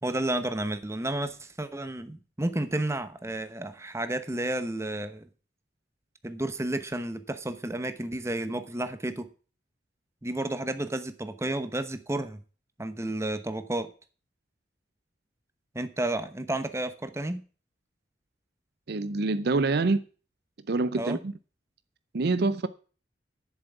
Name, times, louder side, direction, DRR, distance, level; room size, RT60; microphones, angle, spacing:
voice 1, 0.0-5.2 6.2-9.3 10.2-12.4 12.8-13.9 15.7-17.4 20.9-21.2, right 1 dB, 15° right, 1.0 m, -31 dB
voice 2, 18.9-20.0 20.7-21.3 22.1-22.7, right 3 dB, 60° right, 0.6 m, -26 dB
7.7 x 7.2 x 8.0 m
head